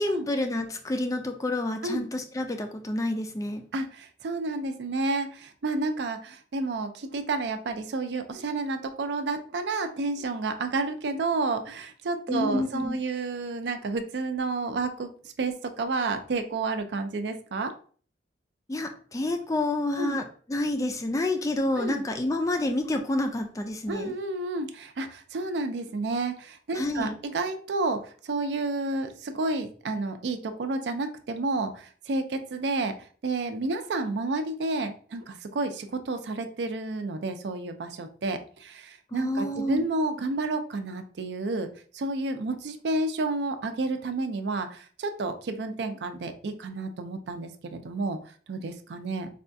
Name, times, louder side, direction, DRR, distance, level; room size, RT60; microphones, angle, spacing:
voice 1, 0.0-3.6 12.3-13.0 18.7-24.1 26.7-27.1 39.1-39.9, left 1 dB, 20° left, 5 dB, 0.3 m, -29 dB
voice 2, 3.7-15.1 15.4-17.7 20.0-20.2 21.8-22.0 23.9-32.9 33.2-41.7 41.9-48.2 48.5-49.3, right 3 dB, 75° right, 7 dB, 0.4 m, -30 dB
4.1 x 2.3 x 2.6 m, 0.43 s
head